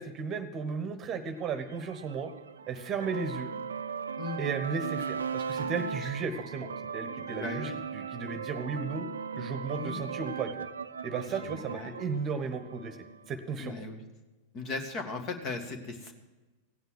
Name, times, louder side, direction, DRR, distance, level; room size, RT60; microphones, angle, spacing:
voice 1, 0.0-2.3 2.7-3.5 4.4-9.1 9.4-10.7 11.0-13.0 13.3-13.7, right 5 dB, 30° right, 9 dB, 1.2 m, -35 dB
sound 1, 1.4-13.2, right 6 dB, 70° right, 0.6 m, -38 dB
voice 2, 7.3-7.8 9.8-10.0 11.4-12.0 13.6-14.0 14.5-16.1, left 3 dB, 35° left, 6 dB, 1.9 m, -37 dB
16.5 x 9.4 x 6.2 m, 1.2 s
figure-of-eight pair, 90°, 0 cm